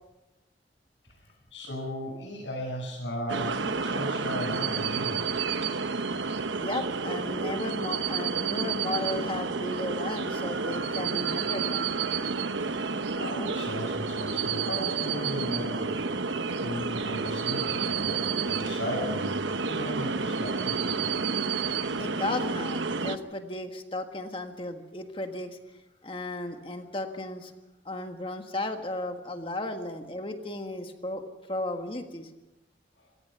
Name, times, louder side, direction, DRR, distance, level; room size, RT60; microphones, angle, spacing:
voice 1, 1.2-5.3 12.7-21.1 33.0-33.1, equal, 80° left, -5 dB, 7.8 m, -36 dB
sound 1, 3.3-23.2, right 5 dB, 90° right, 1.0 m, -30 dB
voice 2, 6.6-11.9 22.0-25.6 26.0-27.5 27.8-31.2 31.5-32.3, left 2 dB, 30° left, 5 dB, 1.6 m, -34 dB
26.5 x 18.0 x 5.8 m, 1.0 s
head